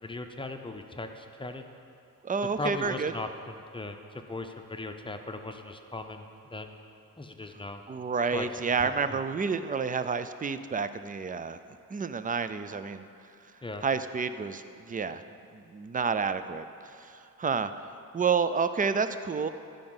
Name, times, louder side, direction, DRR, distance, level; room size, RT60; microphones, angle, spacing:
voice 1, 0.0-1.6 2.6-6.8 7.2-7.8 8.3-8.5 8.8-9.2 13.6-13.9, left 2 dB, 15° left, 5 dB, 0.6 m, -38 dB
voice 2, 2.2-3.1 7.9-11.6 11.9-13.0 13.8-15.2 15.5-17.7 18.1-19.5, right 5 dB, 25° right, 11 dB, 0.4 m, -30 dB
14.5 x 5.4 x 7.8 m, 2.7 s
wide cardioid pair, 165°, 35 cm